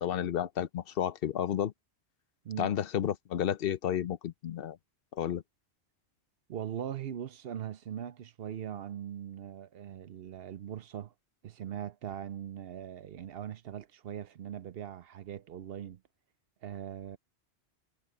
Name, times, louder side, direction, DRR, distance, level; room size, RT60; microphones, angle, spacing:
voice 1, 0.0-1.7 2.6-4.8 5.1-5.4, left 10 dB, 60° left, 0.9 m, -31 dB
voice 2, 6.5-11.1 11.4-16.0 16.6-17.2, right 9 dB, 65° right, 0.8 m, -40 dB
omnidirectional pair, 1.1 m